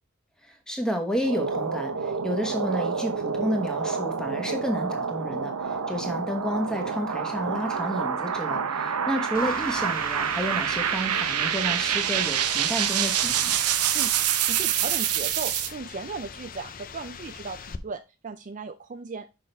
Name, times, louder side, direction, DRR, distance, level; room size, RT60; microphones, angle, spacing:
voice 1, 0.7-13.6, equal, 5° left, 4 dB, 1.2 m, -31 dB
sound 1, 1.1-15.7, right 8 dB, 85° right, 0.7 m, -27 dB
sound 2, 9.3-17.8, left 6 dB, 40° left, 0.5 m, -42 dB
voice 2, 13.9-19.3, right 4 dB, 35° right, 8 dB, 0.4 m, -37 dB
6.3 x 5.7 x 3.3 m, 0.27 s
head